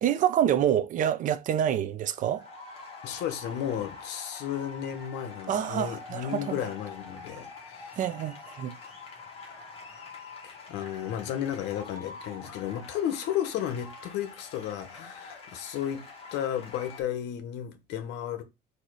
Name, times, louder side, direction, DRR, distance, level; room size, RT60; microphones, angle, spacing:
voice 1, 0.0-2.5 5.5-6.6 8.0-8.8, right 10 dB, 45° right, 0.5 m, -27 dB
sound 1, 2.0-17.0, left 4 dB, 30° left, 1.5 m, -45 dB
voice 2, 3.0-8.0 10.4-18.4, left 10 dB, 70° left, 0.9 m, -33 dB
4.0 x 2.8 x 4.7 m
cardioid pair, 140°, 18 cm